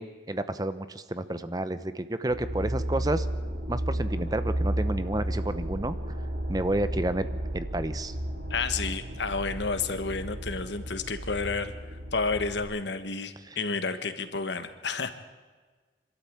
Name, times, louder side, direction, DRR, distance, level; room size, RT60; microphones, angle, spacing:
voice 1, 0.0-3.3 3.7-6.0 6.5-7.3 7.5-8.1 13.5-13.6, right 1 dB, 20° right, 12 dB, 0.8 m, -30 dB
sound 1, 2.3-12.6, right 1 dB, 60° right, 3.6 m, -33 dB
voice 2, 8.5-11.7 12.1-15.1, left 4 dB, 80° left, 10 dB, 1.5 m, -30 dB
26.0 x 13.0 x 8.6 m, 1.4 s
head